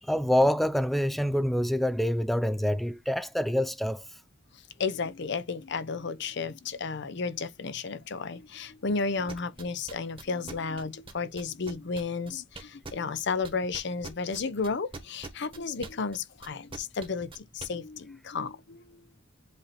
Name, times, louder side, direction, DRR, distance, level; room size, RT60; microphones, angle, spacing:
voice 1, 0.0-4.1, equal, ahead, 0.3 m, -26 dB
voice 2, 4.8-19.0, left 4 dB, 65° left, 0.7 m, -33 dB
sound 1, 9.3-13.2 13.4-17.7, right 3 dB, 30° right, 1.3 m, -42 dB
8.1 x 2.7 x 4.2 m
head